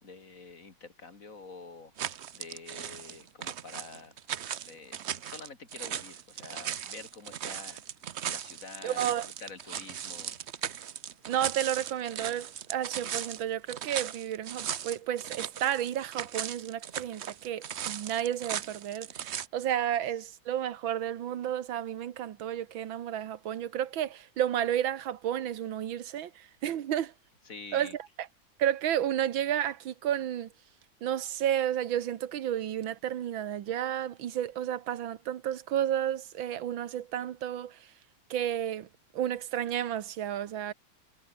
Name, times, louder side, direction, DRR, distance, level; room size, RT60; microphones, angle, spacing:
voice 1, 0.0-1.9 2.3-4.1 4.7-7.8 8.3-10.4 27.5-28.0, left 4 dB, 45° left, 3.4 m, -47 dB
sound 1, 2.0-19.5, right 9 dB, 55° right, 0.7 m, -38 dB
voice 2, 8.8-9.2 11.3-27.1 27.7-27.9 28.2-28.3 28.6-30.5 31.0-37.8 38.3-38.9 39.1-40.7, right 10 dB, 85° right, 1.9 m, -32 dB
omnidirectional pair, 2.1 m